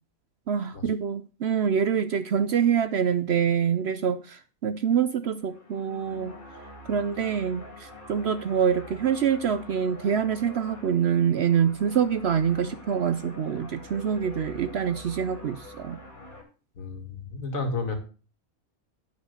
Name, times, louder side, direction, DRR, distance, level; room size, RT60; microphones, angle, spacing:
voice 1, 0.5-6.3 6.9-16.0, right 7 dB, 60° right, 0.7 m, -25 dB
sound 1, 5.3-16.4, left 2 dB, 35° left, 2.3 m, -45 dB
voice 2, 16.7-17.9, left 3 dB, 70° left, 2.2 m, -32 dB
9.3 x 5.3 x 6.5 m
omnidirectional pair, 1.5 m